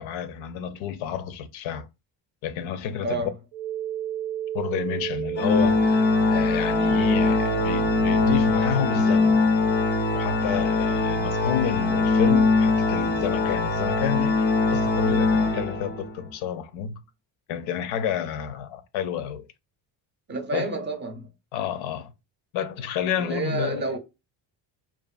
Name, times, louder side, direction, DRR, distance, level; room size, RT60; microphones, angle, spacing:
voice 1, 0.0-1.9 2.4-3.3 4.5-9.6 10.1-14.4 14.7-17.0 17.5-19.5 20.5-20.7 21.5-22.1 22.5-24.0, left 8 dB, 80° left, 0.6 m, -30 dB
voice 2, 3.0-3.3 20.3-21.3 23.2-24.0, right 3 dB, 25° right, 0.6 m, -29 dB
sound 1, 3.5-8.5, right 11 dB, 75° right, 0.6 m, -31 dB
Organ, 5.4-16.2, left 3 dB, 25° left, 0.4 m, -22 dB
2.5 x 2.5 x 2.3 m
cardioid pair, 105°, 46 cm